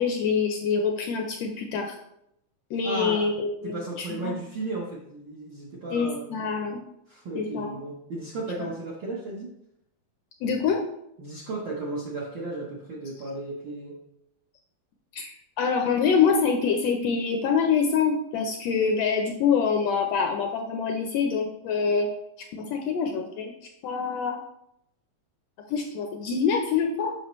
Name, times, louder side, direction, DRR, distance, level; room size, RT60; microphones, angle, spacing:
voice 1, 0.0-2.0 2.7-4.4 5.9-6.8 7.4-7.7 8.6-8.7 10.4-10.8 15.1-22.1 22.4-23.5 23.8-24.4 25.7-27.1, left 6 dB, 75° left, 3 dB, 1.5 m, -25 dB
voice 2, 2.8-3.3 3.6-6.2 7.1-9.5 11.2-14.0, right 2 dB, 65° right, -4 dB, 1.1 m, -34 dB
7.5 x 5.5 x 3.0 m, 0.79 s
omnidirectional pair, 3.4 m